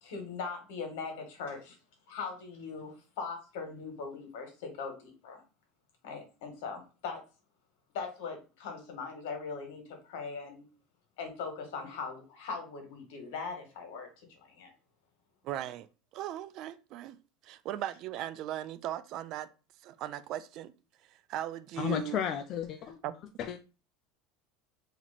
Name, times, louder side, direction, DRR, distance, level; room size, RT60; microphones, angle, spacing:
voice 1, 0.0-1.8 2.1-5.4 6.0-7.2 7.9-10.6 11.2-14.7, left 5 dB, 80° left, 1.5 m, -40 dB
voice 2, 15.4-15.9 16.1-17.2 17.4-19.5 19.8-20.7 21.0-22.2 23.0-23.1, right 12 dB, 50° right, 0.3 m, -38 dB
voice 3, 21.8-23.0 23.4-23.6, left 9 dB, 40° left, 0.3 m, -33 dB
3.0 x 2.9 x 4.0 m
supercardioid pair, 140°, 0 cm